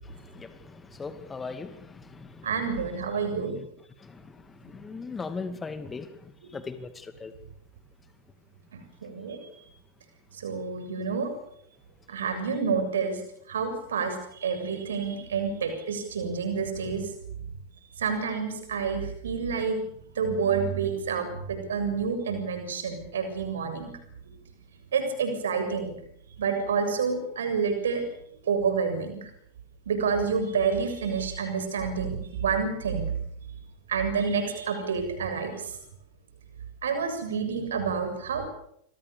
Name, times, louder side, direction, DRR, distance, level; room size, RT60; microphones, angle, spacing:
voice 1, 0.1-2.3 4.0-4.2 4.6-6.1 6.5-7.3, left 4 dB, 15° left, 10 dB, 2.5 m, -38 dB
voice 2, 2.4-3.6 9.0-9.5 10.3-11.3 12.1-13.2 13.5-17.1 18.0-19.8 20.2-23.9 24.9-25.9 26.4-28.0 28.5-29.2 29.9-33.1 33.9-35.7 36.8-38.5, right 5 dB, 65° right, 8 dB, 7.3 m, -28 dB
27.5 x 24.0 x 7.1 m, 0.71 s
figure-of-eight pair, 90°, 0 cm